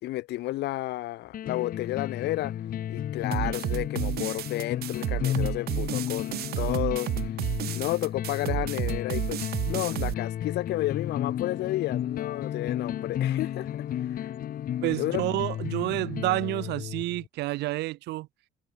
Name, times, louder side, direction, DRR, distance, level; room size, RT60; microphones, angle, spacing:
voice 1, 0.0-2.5 2.9-7.3 7.7-9.4 9.7-14.3 15.0-15.2, left 16 dB, 80° left, 3.6 m, -32 dB
sound 1, 1.3-17.3, left 11 dB, 55° left, 2.8 m, -33 dB
sound 2, 3.3-10.1, right 14 dB, 70° right, 1.8 m, -31 dB
voice 2, 14.8-18.3, right 18 dB, 85° right, 3.5 m, -29 dB
cardioid pair, 110°, 17 cm